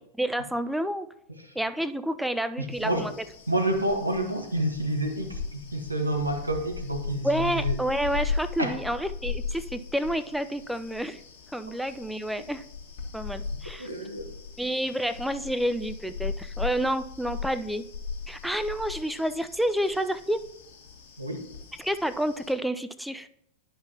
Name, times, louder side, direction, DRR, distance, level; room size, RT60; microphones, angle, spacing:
voice 1, 0.2-1.1 1.6-3.1 7.2-11.2 11.5-12.6 13.1-13.9 14.6-17.9 18.3-20.4 21.8-23.3, equal, ahead, 12 dB, 0.4 m, -29 dB
voice 2, 2.6-3.1 3.5-7.8 8.6-8.7 13.8-14.3 21.2-21.5, right 1 dB, 85° right, 4 dB, 1.0 m, -29 dB
sound 1, 2.7-22.5, left 5 dB, 55° left, 1.4 m, -38 dB
10.0 x 5.6 x 2.8 m, 0.75 s
figure-of-eight pair, 90°, 0 cm